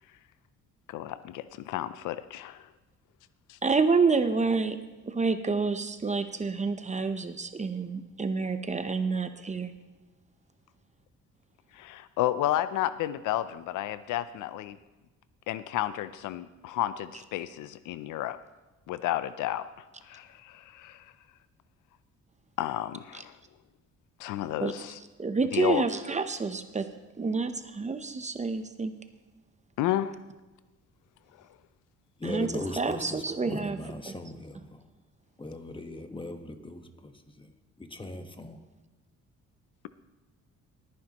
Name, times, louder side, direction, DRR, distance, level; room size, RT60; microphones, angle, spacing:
voice 1, 0.9-2.7 3.5-3.6 11.7-14.8 15.5-18.4 18.9-19.7 20.0-21.1 22.6-23.4 24.2-25.0 25.5-25.9 29.8-30.2, left 13 dB, 85° left, 14 dB, 0.5 m, -31 dB
voice 2, 3.6-4.8 5.1-9.7 24.6-24.7 25.2-26.9 27.2-28.9 32.2-32.5 32.8-33.8 34.1-34.2, right 4 dB, 25° right, 9 dB, 0.7 m, -28 dB
voice 3, 32.2-34.8 35.4-38.6, left 2 dB, 15° left, 6 dB, 1.3 m, -39 dB
19.5 x 9.6 x 3.0 m, 1.1 s
cardioid pair, 90°, 30 cm